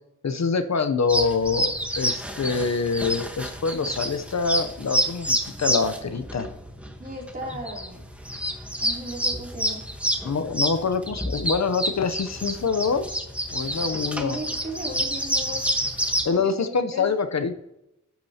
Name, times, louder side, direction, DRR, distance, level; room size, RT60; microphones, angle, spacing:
voice 1, 0.2-6.5 10.2-14.4 16.2-17.6, left 5 dB, 60° left, 9 dB, 0.7 m, -25 dB
sound 1, 1.1-16.3, equal, 5° right, 1.2 m, -28 dB
voice 2, 7.0-8.0 8.7-9.8 14.1-15.6 16.3-17.1, equal, 30° right, -2 dB, 3.0 m, -36 dB
12.0 x 8.5 x 2.8 m, 0.86 s
wide cardioid pair, 100°, 31 cm